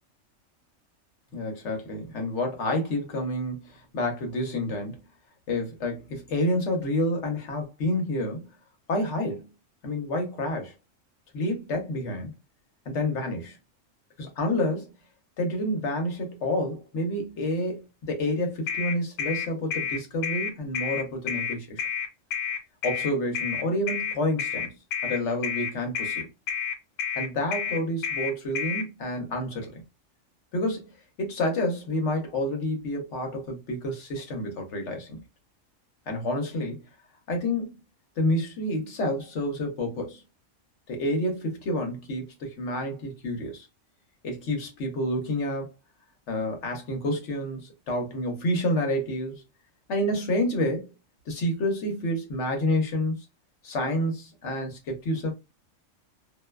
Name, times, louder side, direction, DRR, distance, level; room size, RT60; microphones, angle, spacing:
voice 1, 1.3-5.0 5.5-8.5 8.9-9.5 9.8-10.7 11.3-12.3 12.9-13.6 14.2-14.9 15.4-21.8 22.8-24.7 25.0-26.3 27.2-29.8 30.5-30.9 31.2-35.2 36.1-36.8 37.3-37.7 38.2-40.2 40.9-43.7 44.2-45.7 46.3-49.4 49.9-50.9 51.3-53.1 53.6-55.3, left 1 dB, 65° left, 1.1 m, -29 dB
sound 1, 18.7-28.8, left 7 dB, 90° left, 1.1 m, -30 dB
2.6 x 2.2 x 2.2 m
omnidirectional pair, 1.4 m